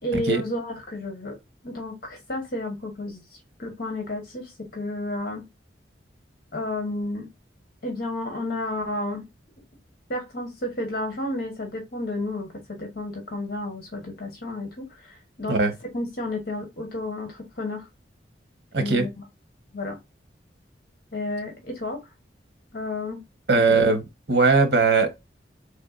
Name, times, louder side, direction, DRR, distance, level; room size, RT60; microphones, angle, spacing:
voice 1, 0.0-1.3 1.6-5.4 6.5-7.3 7.8-9.3 10.1-15.6 15.9-17.9 18.8-19.1 19.7-20.0 21.1-22.0 22.7-23.2, left 1 dB, 60° left, 1.3 m, -31 dB
voice 2, 18.7-19.1 23.5-24.0 24.3-25.2, right 3 dB, 70° right, 1.1 m, -19 dB
4.4 x 3.4 x 2.5 m
head